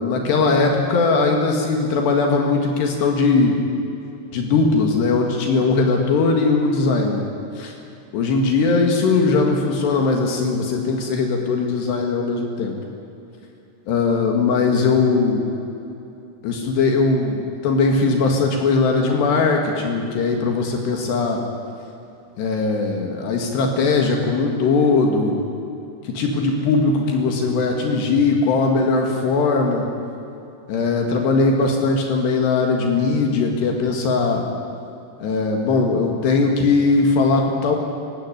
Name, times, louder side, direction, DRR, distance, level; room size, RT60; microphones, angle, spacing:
voice 1, 0.0-3.6 4.3-7.2 7.6-7.7 8.1-12.8 13.9-15.5 16.4-21.4 22.4-25.4 26.0-29.9 30.7-34.5 35.2-37.8, left 4 dB, 80° left, 2 dB, 4.1 m, -19 dB
27.5 x 16.5 x 10.0 m, 2.8 s
omnidirectional pair, 4.9 m